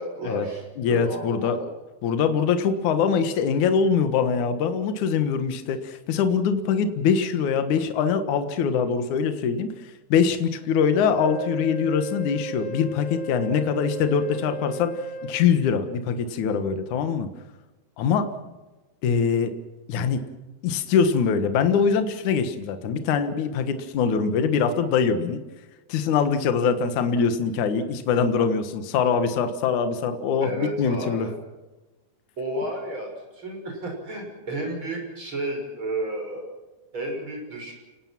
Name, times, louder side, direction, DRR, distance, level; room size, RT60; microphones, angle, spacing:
voice 1, 0.0-1.7 30.4-31.3 32.4-36.5 36.9-37.7, right 1 dB, 30° right, 2 dB, 6.9 m, -32 dB
voice 2, 0.8-1.6 2.0-9.7 10.1-14.9 15.2-17.3 18.0-18.3 19.0-19.5 19.9-20.2 20.6-25.4 25.9-31.3, left 6 dB, 60° left, 9 dB, 2.7 m, -23 dB
Wind instrument woodwind instrument, 11.1-15.5, right 2 dB, 20° left, 1.4 m, -35 dB
30.0 x 19.0 x 6.0 m, 1.2 s
omnidirectional pair, 4.3 m